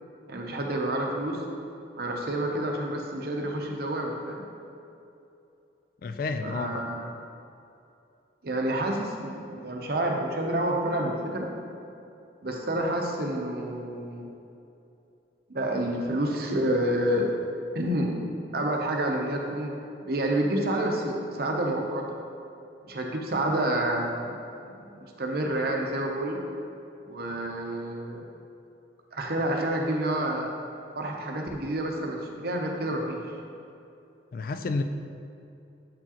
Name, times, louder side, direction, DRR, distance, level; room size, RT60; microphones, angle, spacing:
voice 1, 0.3-1.4 2.0-4.4 6.4-7.1 8.4-11.5 12.4-14.3 15.5-17.3 17.7-18.2 18.5-19.7 20.0-22.0 22.9-24.4 24.6-26.4 27.0-28.3 29.1-30.5 30.9-33.2, right 1 dB, 55° right, 1 dB, 0.7 m, -29 dB
voice 2, 6.0-6.8 34.3-34.8, left 3 dB, 50° left, 8 dB, 0.3 m, -30 dB
7.6 x 4.6 x 2.9 m, 2.7 s
head